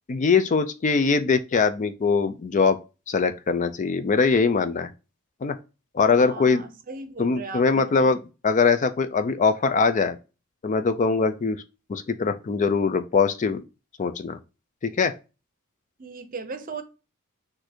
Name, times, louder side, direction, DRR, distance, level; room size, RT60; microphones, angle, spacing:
voice 1, 0.1-2.8 3.1-4.9 5.4-5.6 5.9-6.6 7.2-8.2 8.4-10.2 10.6-11.6 11.9-13.6 14.0-14.4 14.8-15.2, left 4 dB, 35° left, 0.4 m, -22 dB
voice 2, 6.2-8.2 16.0-16.8, right 4 dB, 40° right, 0.7 m, -37 dB
4.3 x 2.6 x 4.3 m
head